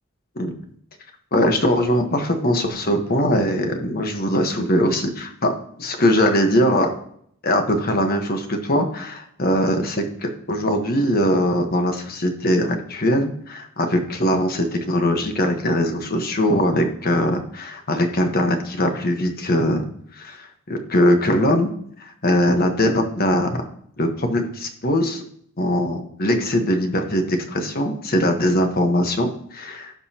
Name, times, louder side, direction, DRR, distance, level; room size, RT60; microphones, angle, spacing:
voice 1, 1.3-5.5 5.8-6.9 7.4-19.9 20.1-21.7 22.0-23.6 24.0-25.2 25.6-29.9, equal, 45° left, 5 dB, 1.3 m, -21 dB
16.0 x 5.3 x 2.9 m, 0.66 s
head